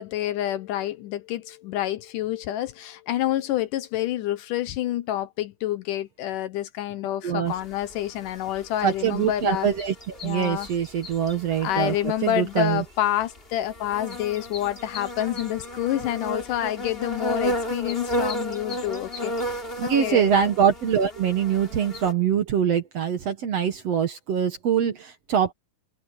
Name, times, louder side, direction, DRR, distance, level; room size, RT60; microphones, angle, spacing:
voice 1, 0.0-9.7 10.2-10.7 11.6-20.5, left 13 dB, 75° left, 2.3 m, -28 dB
sound 1, 7.5-22.1, equal, 15° left, 2.7 m, -34 dB
voice 2, 8.8-11.9 12.2-12.8 19.8-25.5, right 8 dB, 60° right, 1.9 m, -24 dB
omnidirectional pair, 4.1 m